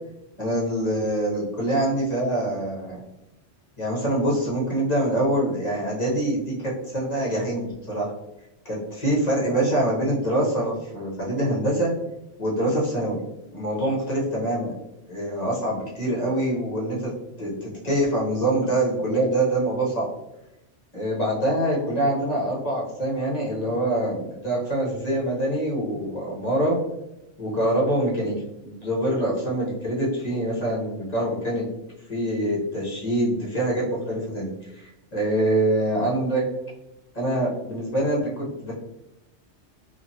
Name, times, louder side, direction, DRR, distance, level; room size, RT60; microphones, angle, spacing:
voice 1, 0.4-3.0 3.8-8.1 8.6-11.9 12.4-13.2 13.5-14.7 15.1-17.1 17.4-20.1 20.9-26.8 27.4-28.4 28.6-31.7 32.1-36.4 37.1-38.7, right 1 dB, 40° left, -5 dB, 0.8 m, -25 dB
2.9 x 2.4 x 2.7 m, 0.91 s
omnidirectional pair, 1.3 m